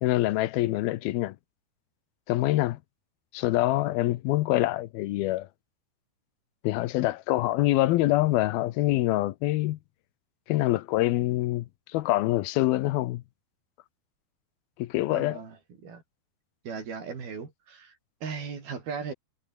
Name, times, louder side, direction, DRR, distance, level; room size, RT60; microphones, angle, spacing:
voice 1, 0.0-1.4 2.3-2.8 3.3-5.5 6.6-9.8 10.5-13.2 14.8-15.4, left 16 dB, 80° left, 2.7 m, -25 dB
voice 2, 15.1-16.0 16.6-19.1, right 5 dB, 75° right, 6.8 m, -38 dB
omnidirectional pair, 4.4 m